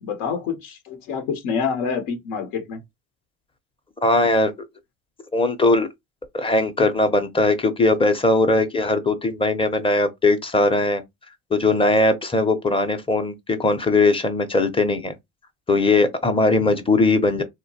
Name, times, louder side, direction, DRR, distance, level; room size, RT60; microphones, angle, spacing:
voice 1, 0.0-2.8, left 6 dB, 85° left, 0.7 m, -27 dB
voice 2, 4.0-4.5 5.3-5.9 6.3-11.0 11.5-15.1 15.7-17.4, left 2 dB, 15° left, 0.6 m, -19 dB
2.8 x 2.2 x 2.7 m
supercardioid pair, 90°, 35 cm